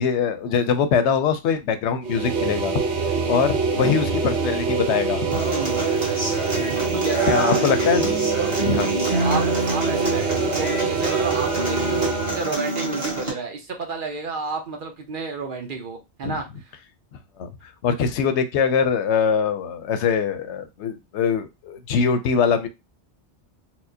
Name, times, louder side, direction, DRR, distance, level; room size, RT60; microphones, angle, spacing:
voice 1, 0.0-2.8 3.3-5.4 7.3-8.1 8.6-8.9 16.2-16.4 17.4-17.5 17.8-22.7, left 6 dB, 80° left, 0.9 m, -22 dB
sound 1, 2.0-12.5, right 4 dB, 80° right, 1.0 m, -24 dB
Human voice / Acoustic guitar, 5.3-13.3, right 2 dB, 30° right, 1.1 m, -27 dB
voice 2, 5.5-5.8 6.9-7.6 9.2-16.4, right 4 dB, 55° right, 0.8 m, -31 dB
4.3 x 2.1 x 2.7 m
omnidirectional pair, 1.2 m